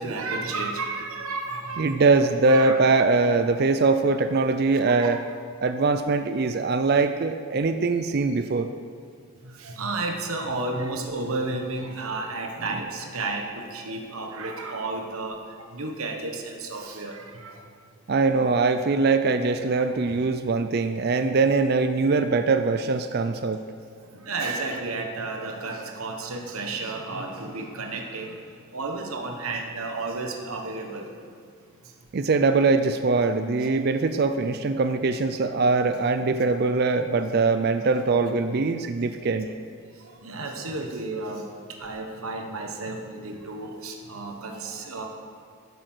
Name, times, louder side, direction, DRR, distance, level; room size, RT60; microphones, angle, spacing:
voice 1, 0.0-2.0 2.5-2.8 4.7-5.1 9.4-15.4 15.7-17.6 19.8-19.9 24.0-28.4 28.7-31.1 33.6-33.8 40.2-41.5 41.8-45.1, right 3 dB, 75° right, 2 dB, 1.2 m, -32 dB
voice 2, 1.8-5.2 5.6-8.7 18.1-23.6 32.1-39.5, right 3 dB, 45° right, 9 dB, 0.4 m, -22 dB
11.5 x 8.1 x 6.2 m, 2.2 s
head